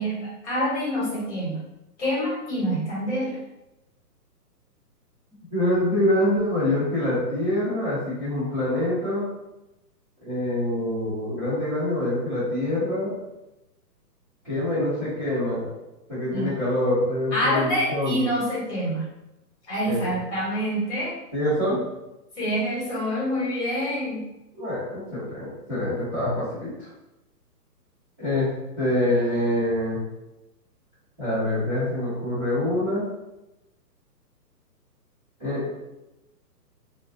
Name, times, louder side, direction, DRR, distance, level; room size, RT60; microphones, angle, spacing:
voice 1, 0.0-1.6 2.0-3.4 16.3-16.5 17.3-19.1 19.7-21.1 22.4-24.3, equal, 45° left, -6 dB, 1.3 m, -26 dB
voice 2, 5.5-9.2 10.2-13.2 14.4-15.7 16.1-18.2 19.8-20.2 21.3-21.8 24.5-26.9 28.2-28.5 28.8-30.0 31.2-33.0 35.4-35.7, left 1 dB, 10° right, -22 dB, 0.5 m, -25 dB
2.5 x 2.0 x 2.7 m, 0.94 s
hypercardioid pair, 160°, 49 cm